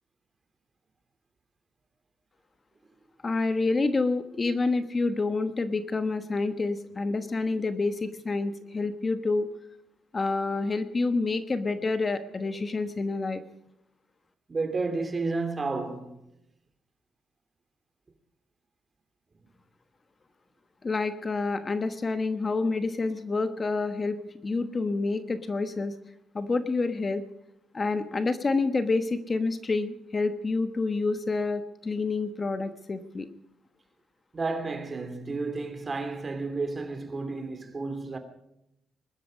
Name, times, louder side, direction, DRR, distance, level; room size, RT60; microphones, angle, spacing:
voice 1, 3.2-9.5 10.1-13.4 20.8-24.2 24.4-25.9 26.3-27.2 27.7-33.3, left 3 dB, 30° left, 1.2 m, -28 dB
voice 2, 14.5-16.2 34.3-38.2, right 3 dB, 30° right, 2.8 m, -31 dB
22.0 x 12.0 x 5.2 m
cardioid pair, 90°, 0 cm